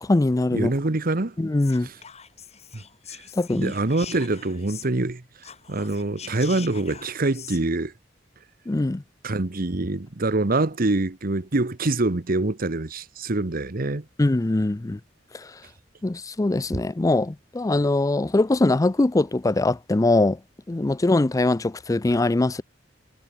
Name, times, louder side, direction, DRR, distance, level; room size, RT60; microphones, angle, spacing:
voice 1, 0.0-0.7 1.4-1.9 3.3-3.7 8.7-9.0 14.2-15.0 15.3-15.5 16.0-20.4 20.7-22.6, left 2 dB, 20° left, 0.4 m, -22 dB
voice 2, 0.5-1.4 1.8-1.9 2.7-2.8 3.1-3.2 3.5-5.2 5.7-7.9 9.2-14.1, right 2 dB, 50° right, 1.1 m, -25 dB
Whispering, 1.6-5.1 5.4-7.6, left 7 dB, 35° left, 7.2 m, -43 dB
head